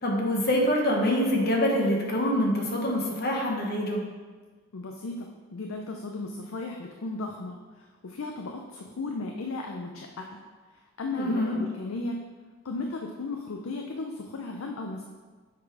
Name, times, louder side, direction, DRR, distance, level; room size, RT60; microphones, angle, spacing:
voice 1, 0.0-4.1 11.1-11.6, equal, 50° left, 0 dB, 1.2 m, -25 dB
voice 2, 4.7-7.6 8.0-10.2 11.0-12.2 12.6-15.0, left 3 dB, 90° left, 2 dB, 0.6 m, -35 dB
7.4 x 3.9 x 4.8 m, 1.4 s
head